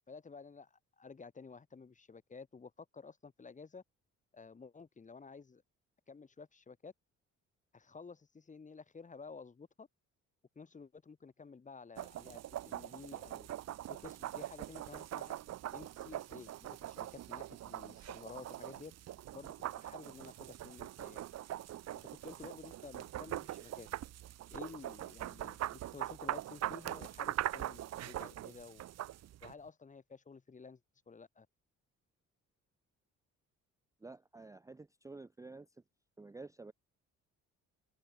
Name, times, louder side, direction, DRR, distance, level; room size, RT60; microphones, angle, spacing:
voice 1, 0.1-3.8 4.3-5.6 6.1-6.9 7.7-9.9 10.5-13.5 14.0-15.4 15.7-18.9 19.3-21.2 22.2-23.9 24.5-28.8 29.4-30.8 31.1-31.5, left 4 dB, 25° left, 1.1 m, -52 dB
sound 1, 12.0-29.5, right 13 dB, 60° right, 0.7 m, -42 dB
voice 2, 34.0-35.7 36.2-36.7, right 3 dB, 10° right, 0.5 m, -50 dB
cardioid pair, 90°, 30 cm